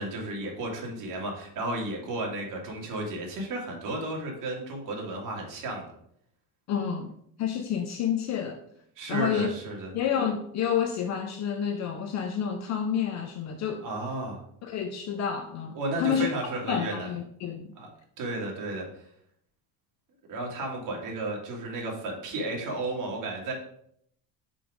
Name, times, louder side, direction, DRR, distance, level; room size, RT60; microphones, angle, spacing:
voice 1, 0.0-5.9 9.0-9.9 13.8-14.4 15.7-17.1 17.8-17.9 18.2-18.9 20.3-23.5, right 2 dB, 50° right, -1 dB, 2.2 m, -33 dB
voice 2, 6.7-7.1 7.4-8.6 9.1-9.5 9.9-13.9 14.6-16.3 16.7-17.7, left 8 dB, 45° left, 7 dB, 0.6 m, -29 dB
5.4 x 4.9 x 4.8 m, 0.70 s
cardioid pair, 150°, 40 cm